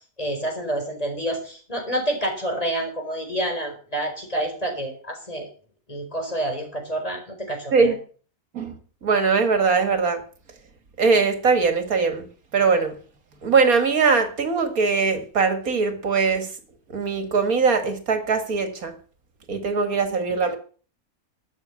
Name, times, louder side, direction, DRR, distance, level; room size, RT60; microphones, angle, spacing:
voice 1, 0.2-5.5 5.9-7.9, right 1 dB, 25° left, 4.6 m, -28 dB
voice 2, 9.0-10.2 11.0-12.3 12.5-13.0 13.4-16.5 16.9-18.9 19.5-20.6, right 4 dB, 70° right, 2.3 m, -21 dB
12.5 x 8.2 x 7.1 m
omnidirectional pair, 1.6 m